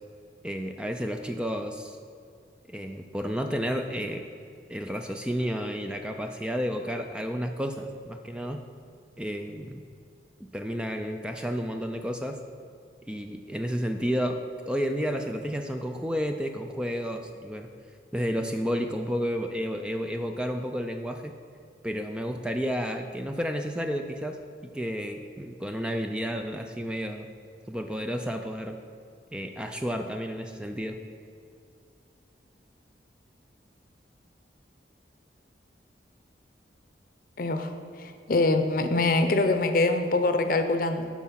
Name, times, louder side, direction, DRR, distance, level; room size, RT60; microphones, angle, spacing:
voice 1, 0.4-2.0 2.7-4.2 4.7-8.6 9.2-9.8 10.4-12.4 13.1-17.7 18.1-21.3 21.8-27.3 27.7-28.8 29.3-31.0, equal, 5° right, 5 dB, 0.3 m, -31 dB
voice 2, 37.4-41.1, left 2 dB, 50° left, 8 dB, 0.6 m, -24 dB
8.2 x 6.0 x 5.8 m, 2.4 s
head